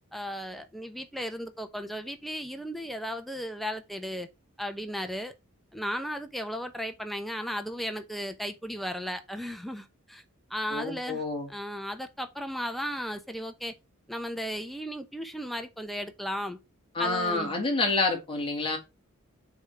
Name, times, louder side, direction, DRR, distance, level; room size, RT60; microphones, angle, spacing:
voice 1, 0.1-4.3 4.6-5.3 5.7-10.2 10.5-11.2 11.5-13.7 14.1-16.6 17.0-17.6, equal, ahead, 0.7 m, -35 dB
voice 2, 10.7-11.5 16.9-18.8, left 3 dB, 25° left, 2.0 m, -28 dB
7.1 x 3.7 x 4.2 m
head